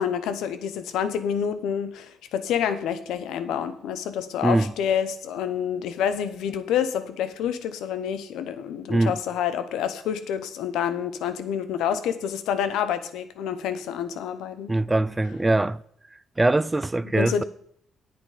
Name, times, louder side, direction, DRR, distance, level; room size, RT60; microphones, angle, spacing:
voice 1, 0.0-14.8 17.1-17.4, left 8 dB, 85° left, 0.8 m, -28 dB
voice 2, 14.7-15.8 16.4-17.4, right 2 dB, 15° right, 0.3 m, -22 dB
9.7 x 8.2 x 5.0 m
cardioid pair, 80°, 0 cm